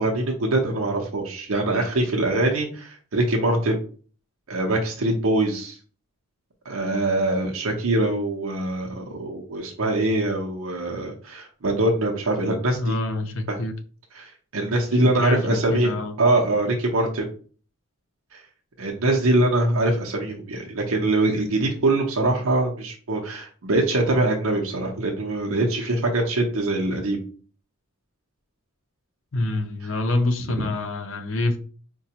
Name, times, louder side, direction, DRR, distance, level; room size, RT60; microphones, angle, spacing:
voice 1, 0.0-3.8 4.5-5.8 6.7-13.0 13.5-13.6 14.1-15.9 16.2-17.3 18.3-18.4 18.8-27.2, right 2 dB, 75° right, 0.7 m, -23 dB
voice 2, 12.7-13.7 15.0-16.2 29.3-31.6, left 2 dB, 65° left, 0.6 m, -26 dB
4.9 x 2.2 x 2.8 m
head